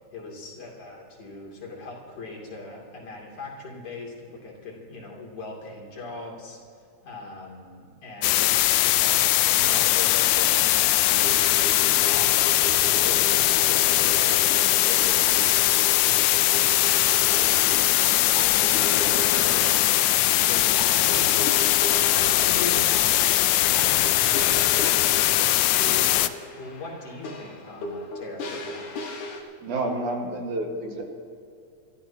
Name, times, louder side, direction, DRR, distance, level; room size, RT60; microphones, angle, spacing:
voice 1, 0.1-6.6 7.0-14.4 14.8-17.8 18.2-18.4 18.8-21.7 22.1-28.9, left 3 dB, 55° left, -3 dB, 3.9 m, -40 dB
sound 1, 8.2-26.3, left 15 dB, 85° left, 1.5 m, -21 dB
sound 2, 11.2-29.4, left 2 dB, 70° left, 2.9 m, -36 dB
voice 2, 29.6-31.0, right 2 dB, 75° right, 1 dB, 3.1 m, -29 dB
28.0 x 13.5 x 2.9 m, 2.4 s
omnidirectional pair, 3.6 m